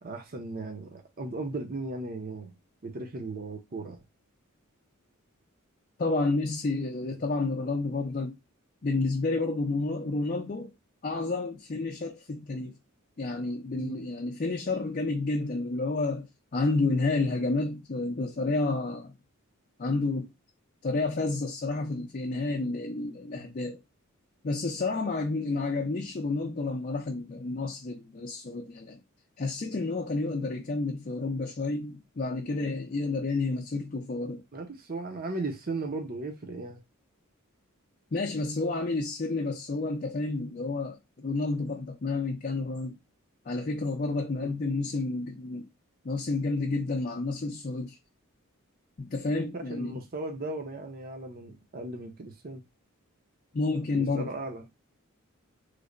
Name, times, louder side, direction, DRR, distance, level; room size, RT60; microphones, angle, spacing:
voice 1, 0.0-2.6 2.8-4.0 7.1-7.2 13.7-14.0 34.5-36.8 44.4-44.5 49.3-52.6 53.9-54.6, right 2 dB, 45° right, 0.6 m, -37 dB
voice 2, 6.0-8.4 8.8-10.7 11.0-12.7 13.2-19.1 19.8-20.3 20.8-23.8 24.4-29.0 29.4-34.4 38.1-43.0 43.5-45.6 46.0-48.0 49.0-50.0 53.5-54.3, left 3 dB, 40° left, 0.5 m, -30 dB
3.2 x 2.1 x 3.7 m
head